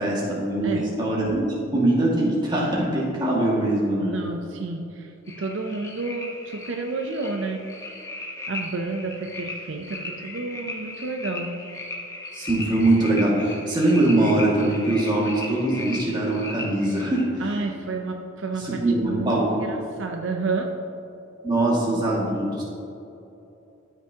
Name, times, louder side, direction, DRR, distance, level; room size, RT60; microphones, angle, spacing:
voice 1, 0.0-1.5 1.7-4.1 12.3-17.2 18.6-19.4 21.4-22.7, right 1 dB, 20° right, -5 dB, 1.9 m, -22 dB
voice 2, 4.0-7.6 8.5-11.6 17.4-20.7, right 3 dB, 70° right, 3 dB, 0.5 m, -30 dB
sound 1, 5.3-17.2, left 2 dB, 15° left, 1.0 m, -37 dB
13.0 x 6.0 x 2.8 m, 2.8 s
head